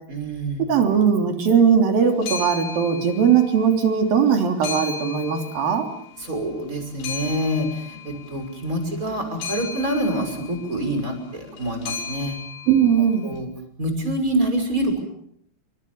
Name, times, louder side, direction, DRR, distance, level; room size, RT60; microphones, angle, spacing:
voice 1, 0.1-0.7 6.2-12.4 13.2-13.5 13.8-15.0, right 1 dB, 20° right, 6 dB, 6.2 m, -26 dB
voice 2, 0.7-5.9 12.7-13.3, right 7 dB, 60° right, 4 dB, 4.9 m, -19 dB
sound 1, 2.0-3.8 4.1-6.4 6.7-13.2, left 5 dB, 75° left, 5.2 m, -36 dB
29.0 x 24.5 x 7.0 m, 0.70 s
omnidirectional pair, 4.8 m